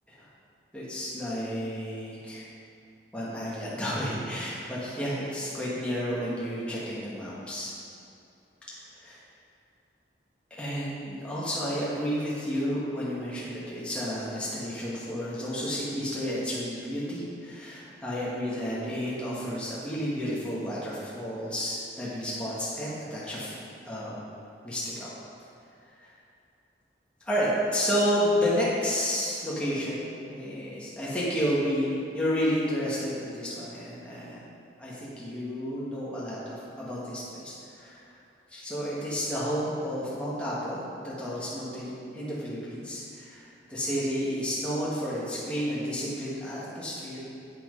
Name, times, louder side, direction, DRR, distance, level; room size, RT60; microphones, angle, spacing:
voice 1, 0.7-2.4 3.1-7.7 9.0-9.2 10.5-23.6 23.9-24.2 24.6-25.2 26.0-26.1 27.2-31.9 32.1-34.4 34.8-38.0 38.5-47.2, equal, 5° left, -9 dB, 1.8 m, -31 dB
8.0 x 7.3 x 5.3 m, 2.7 s
head